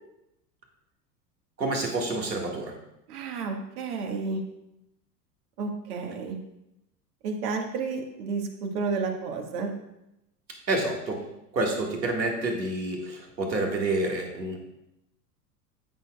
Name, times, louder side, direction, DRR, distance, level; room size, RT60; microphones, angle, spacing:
voice 1, 1.6-2.8 10.7-11.2 11.5-14.6, right 2 dB, 85° right, 1 dB, 2.0 m, -28 dB
voice 2, 3.1-4.4 5.6-6.4 7.2-9.7, right 4 dB, 65° right, 3 dB, 1.7 m, -31 dB
13.5 x 6.5 x 2.3 m, 0.86 s
figure-of-eight pair, 85°, 50 cm